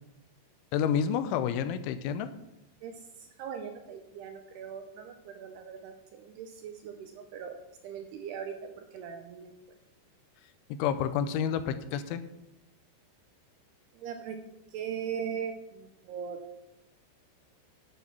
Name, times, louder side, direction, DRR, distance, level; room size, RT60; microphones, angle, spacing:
voice 1, 0.7-2.3 10.7-12.2, left 8 dB, 90° left, 11 dB, 3.1 m, -29 dB
voice 2, 2.8-7.6 7.8-9.5 13.9-14.4 14.7-16.4, right 7 dB, 80° right, 6 dB, 2.5 m, -40 dB
11.0 x 8.2 x 5.9 m, 0.90 s
omnidirectional pair, 5.4 m